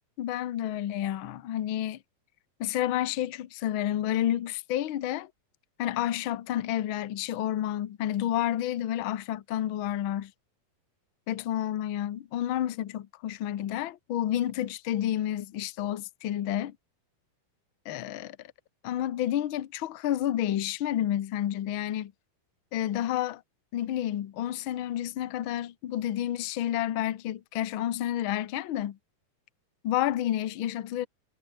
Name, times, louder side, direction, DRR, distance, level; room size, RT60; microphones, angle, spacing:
voice 1, 0.2-2.0 2.6-5.3 5.8-10.3 11.3-16.8 17.8-18.4 18.8-22.1 22.7-23.4 23.7-29.0 29.8-31.1, left 12 dB, 85° left, 1.1 m, -30 dB
omnidirectional pair, 3.9 m